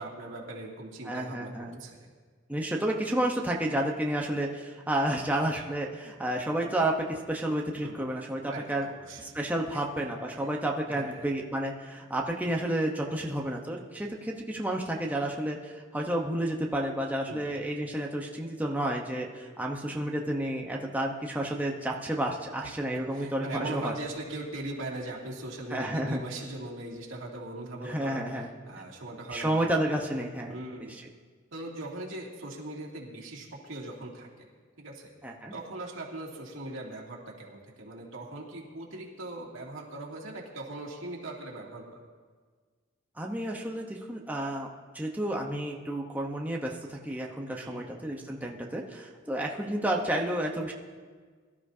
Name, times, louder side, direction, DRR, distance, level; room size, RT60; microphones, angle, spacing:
voice 1, 0.0-2.1 7.8-8.1 8.5-9.4 9.7-10.0 10.4-10.5 10.9-11.3 17.2-17.6 22.6-29.6 30.5-31.0 31.5-34.5 34.8-35.1 35.5-42.0 47.6-47.8, right 2 dB, 75° right, -3 dB, 2.6 m, -40 dB
voice 2, 1.1-1.8 2.5-8.9 9.2-23.9 25.7-26.2 27.8-28.5 29.3-30.5 35.2-35.5 43.2-44.7 44.9-50.7, right 1 dB, 10° right, -1 dB, 0.9 m, -31 dB
22.5 x 12.5 x 2.8 m, 1.5 s
head